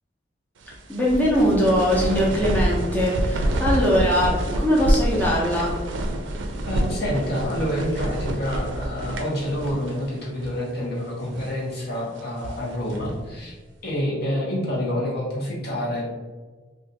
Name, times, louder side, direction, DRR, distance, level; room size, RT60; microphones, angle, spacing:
sound 1, 0.6-10.1 10.4-10.5 11.1-11.6 12.2-13.3, right 1 dB, 80° right, 0.4 m, -27 dB
voice 1, 0.9-5.7, equal, 10° left, -6 dB, 0.6 m, -21 dB
voice 2, 6.7-13.5 13.8-16.1, equal, 55° left, -4 dB, 0.9 m, -27 dB
2.5 x 2.4 x 3.9 m, 1.3 s
head